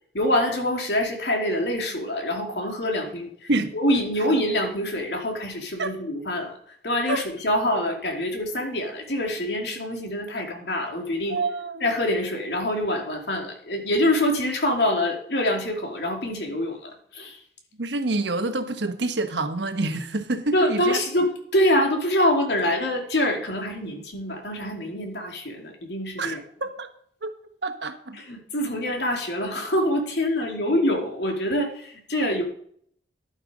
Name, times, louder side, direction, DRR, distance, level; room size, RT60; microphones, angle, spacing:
voice 1, 0.1-6.6 6.8-11.4 11.8-17.4 20.5-26.4 28.1-32.4, left 1 dB, 75° left, 2.7 m, -25 dB
voice 2, 11.3-11.9 17.8-21.0 26.2-26.9 27.2-27.3 27.6-28.2, right 2 dB, 90° right, 1.2 m, -27 dB
11.0 x 9.1 x 5.0 m
head